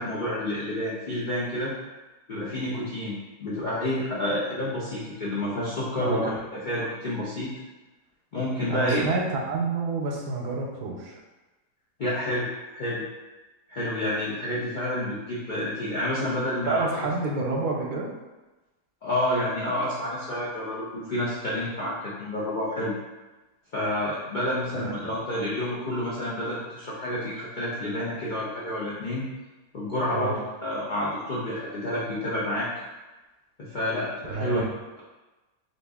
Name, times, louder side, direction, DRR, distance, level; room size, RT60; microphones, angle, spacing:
voice 1, 0.0-1.7 2.3-7.5 8.3-9.0 12.0-12.5 12.7-13.0 13.7-17.1 19.0-22.9 23.7-29.2 29.7-30.3 30.6-32.7 33.6-34.6, left 1 dB, 65° left, -8 dB, 0.4 m, -29 dB
voice 2, 6.0-6.3 8.7-11.2 16.6-18.1 24.7-25.1 30.1-30.4 34.3-34.7, right 3 dB, 80° right, 0 dB, 1.1 m, -28 dB
2.9 x 2.5 x 3.4 m, 1.1 s
omnidirectional pair, 1.6 m